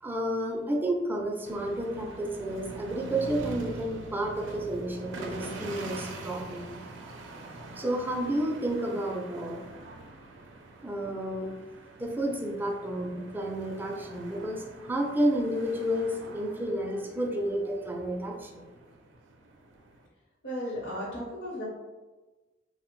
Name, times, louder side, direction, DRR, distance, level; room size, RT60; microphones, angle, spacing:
voice 1, 0.0-6.7 7.8-9.6 10.8-11.5 12.0-18.7, right 1 dB, 10° right, 1 dB, 0.3 m, -31 dB
sound 1, 1.5-20.1, right 2 dB, 85° right, 0.4 m, -44 dB
voice 2, 20.4-21.6, equal, 60° left, -7 dB, 0.7 m, -35 dB
3.2 x 2.0 x 2.9 m, 1.2 s
head